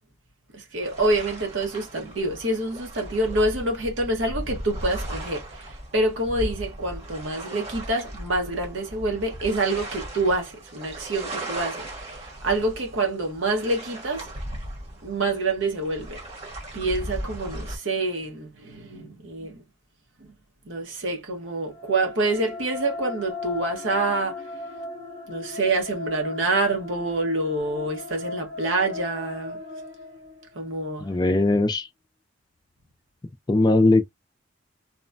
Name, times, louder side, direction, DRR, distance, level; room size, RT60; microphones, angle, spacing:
voice 1, 0.5-12.2 12.4-14.3 15.0-16.2 16.7-19.6 20.7-24.4 25.3-29.6 30.5-31.1, right 2 dB, 80° right, 1.0 m, -27 dB
sound 1, 0.8-17.8, right 1 dB, 35° right, 1.2 m, -37 dB
sound 2, 21.6-30.7, left 3 dB, 55° right, 1.7 m, -37 dB
voice 2, 31.0-31.9 33.5-34.0, left 2 dB, 20° left, 0.4 m, -19 dB
3.0 x 2.2 x 2.5 m
head